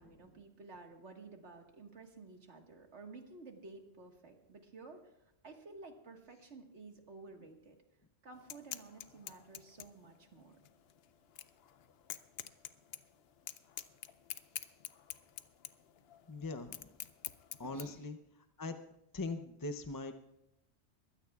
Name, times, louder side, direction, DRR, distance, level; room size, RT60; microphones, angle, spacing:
voice 1, 0.0-5.1 5.4-7.8 8.2-10.6 17.6-18.0, right 3 dB, 75° right, 3 dB, 1.9 m, -53 dB
sound 1, 8.3-17.8, left 10 dB, 65° left, 0.8 m, -48 dB
voice 2, 16.3-17.0 17.6-18.2 18.6-18.8 19.1-20.2, left 3 dB, 25° left, 8 dB, 0.5 m, -41 dB
22.5 x 16.0 x 2.4 m, 0.87 s
omnidirectional pair, 1.2 m